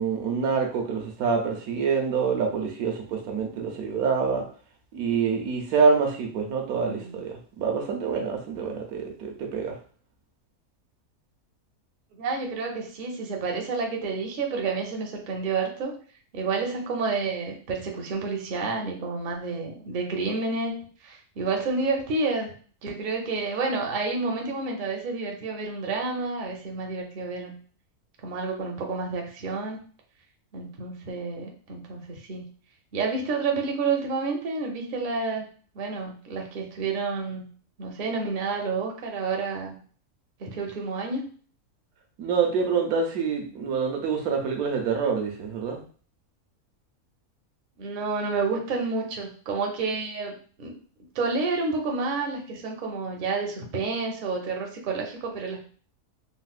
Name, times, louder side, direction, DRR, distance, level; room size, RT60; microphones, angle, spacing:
voice 1, 0.0-4.4 4.9-9.8 42.2-45.8, right 5 dB, 80° right, 2 dB, 1.2 m, -26 dB
voice 2, 6.9-7.2 12.2-15.9 16.3-20.7 21.0-22.5 22.8-27.5 28.2-29.8 30.5-32.4 32.9-35.5 35.7-37.4 37.8-39.7 40.4-41.2 47.8-50.3 50.6-50.8 51.1-55.6, right 4 dB, 50° right, 1 dB, 0.6 m, -29 dB
4.0 x 2.0 x 2.4 m, 0.43 s
omnidirectional pair, 1.6 m